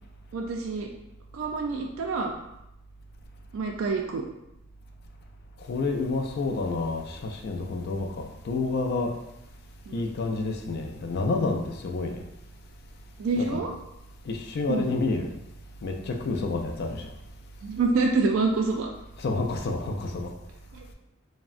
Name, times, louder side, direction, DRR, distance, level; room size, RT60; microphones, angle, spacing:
voice 1, 0.3-0.9 1.3-2.3 3.5-4.2 9.9-10.0 13.2-13.7 14.7-15.0 17.6-18.9 20.7-20.8, right 3 dB, 75° right, 2 dB, 0.3 m, -27 dB
voice 2, 5.7-9.2 9.9-12.2 13.4-13.6 14.3-15.3 15.8-17.1 19.2-20.3, left 3 dB, 50° left, 3 dB, 0.3 m, -29 dB
3.4 x 2.1 x 2.4 m, 0.87 s
head